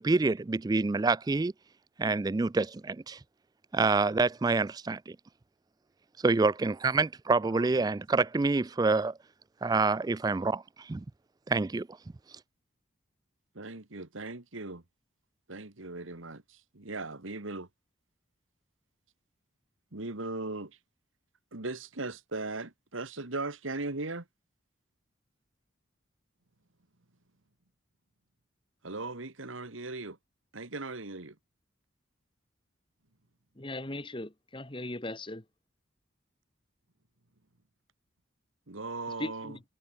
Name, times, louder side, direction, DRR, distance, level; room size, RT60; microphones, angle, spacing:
voice 1, 0.0-1.5 2.0-3.2 3.7-5.2 6.2-9.1 9.6-11.0 11.5-11.9, right 3 dB, 20° right, 0.3 m, -27 dB
voice 2, 13.6-14.8 15.5-17.7 19.9-20.8 21.5-24.2 28.8-30.2 30.5-31.3 38.7-39.6, right 3 dB, 90° right, 2.2 m, -38 dB
voice 3, 33.6-35.4 39.2-39.6, left 1 dB, 25° left, 1.5 m, -38 dB
head